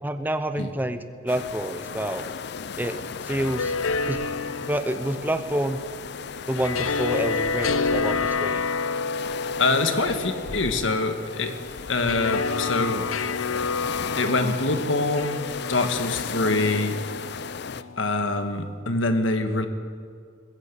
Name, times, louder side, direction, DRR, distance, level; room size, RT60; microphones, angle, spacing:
voice 1, 0.0-2.3 2.8-3.0 3.2-3.7 4.1-4.2 4.6-5.8 6.5-8.6, right 1 dB, 10° right, 9 dB, 0.8 m, -28 dB
sound 1, 1.3-17.8, left 6 dB, 55° left, 0.5 m, -36 dB
sound 2, 3.1-18.3, left 4 dB, 90° left, 0.7 m, -30 dB
voice 2, 9.6-11.5 11.9-13.0 14.2-17.0 18.0-19.7, left 2 dB, 70° left, 7 dB, 1.7 m, -25 dB
21.5 x 16.0 x 8.3 m, 2.1 s
head